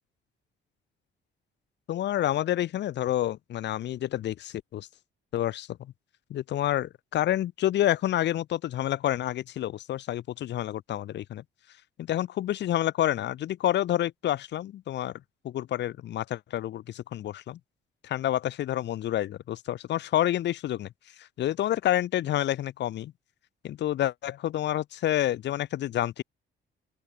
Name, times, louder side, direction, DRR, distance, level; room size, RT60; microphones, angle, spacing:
voice 1, 1.9-4.9 5.3-5.9 6.3-11.4 12.0-17.6 18.0-23.1 23.6-26.2, left 12 dB, 60° left, 0.6 m, -29 dB
open air
cardioid pair, 90°, 20 cm